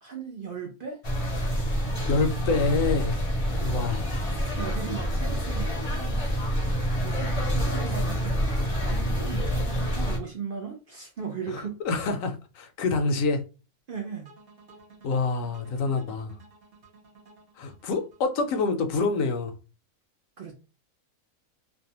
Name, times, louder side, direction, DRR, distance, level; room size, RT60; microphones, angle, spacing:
voice 1, 0.0-1.0 4.4-6.5 7.0-11.8 13.9-14.3 20.4-20.5, right 6 dB, 75° right, 0.5 m, -38 dB
sound 1, 1.0-10.2, equal, 35° left, 0.5 m, -27 dB
voice 2, 1.7-3.2 3.5-4.3 11.5-11.6 11.9-13.4 15.0-16.3 17.6-19.5, left 3 dB, 70° left, 0.9 m, -27 dB
sound 2, 14.2-19.3, right 3 dB, 50° right, 0.9 m, -54 dB
2.6 x 2.2 x 2.8 m
omnidirectional pair, 1.6 m